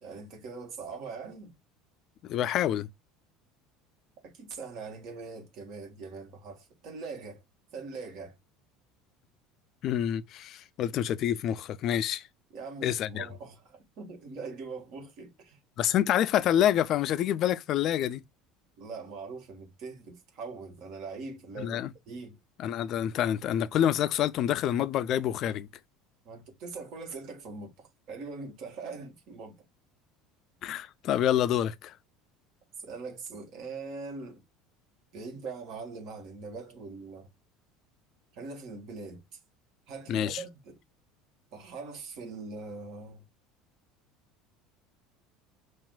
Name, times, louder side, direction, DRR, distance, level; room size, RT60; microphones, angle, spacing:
voice 1, 0.0-1.5 4.2-7.4 7.7-8.4 12.5-15.6 18.8-21.8 22.1-22.4 26.2-29.6 32.8-34.4 35.1-37.3 38.3-39.4 39.9-40.8 41.5-43.2, right 4 dB, 55° right, 1.4 m, -42 dB
voice 2, 2.2-2.9 9.8-12.2 12.8-13.3 15.8-18.2 21.6-21.9 22.6-25.7 30.6-31.9 40.1-40.4, left 11 dB, 45° left, 0.3 m, -27 dB
5.8 x 2.4 x 2.2 m
cardioid pair, 145°, 0 cm